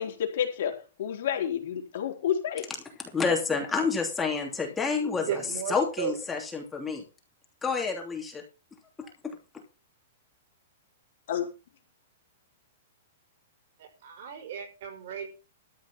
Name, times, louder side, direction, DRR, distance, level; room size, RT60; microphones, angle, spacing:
voice 1, 0.0-2.6 11.3-11.5, left 9 dB, 60° left, 2 dB, 3.7 m, -30 dB
voice 2, 3.1-5.4 5.7-7.0 7.6-8.4 9.0-9.4, left 5 dB, 10° left, 1 dB, 2.9 m, -29 dB
voice 3, 5.2-6.2 13.8-15.3, right 9 dB, 60° right, 5 dB, 5.2 m, -35 dB
13.5 x 5.0 x 8.3 m, 0.32 s
hypercardioid pair, 155°, 0 cm